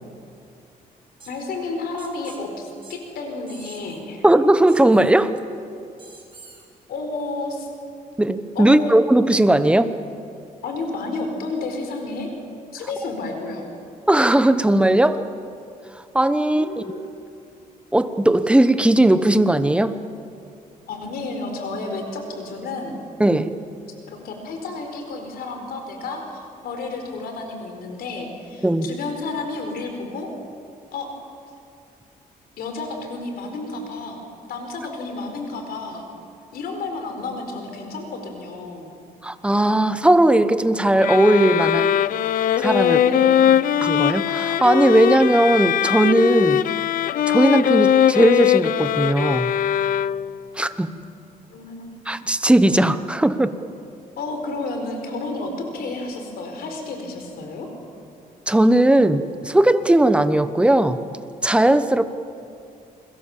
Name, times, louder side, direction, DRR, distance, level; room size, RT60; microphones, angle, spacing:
voice 1, 1.2-4.2 6.9-7.7 8.5-8.9 10.6-12.3 12.7-13.7 16.5-17.1 20.9-23.0 24.1-30.3 30.9-31.1 32.6-34.2 34.5-36.0 36.5-39.0 42.8-43.5 51.5-52.0 54.2-57.7, left 3 dB, 85° left, 4 dB, 4.6 m, -31 dB
sound 1, 1.2-1.3 2.0-2.4 2.8-3.0 3.5-4.0 4.7-5.1 6.0-6.6, right 4 dB, 35° right, 4.7 m, -45 dB
voice 2, 4.2-5.3 8.2-9.9 14.1-15.2 16.1-16.8 17.9-20.0 23.2-23.5 28.6-28.9 39.2-41.9 42.6-43.0 43.8-46.6 47.3-49.5 50.6-51.0 52.1-53.6 58.5-61.0 61.4-62.0, right 1 dB, 5° right, 11 dB, 1.1 m, -17 dB
sound 2, 41.0-50.5, left 10 dB, 65° left, 0.6 m, -20 dB
29.0 x 22.5 x 7.4 m, 2.5 s
cardioid pair, 115°, 15 cm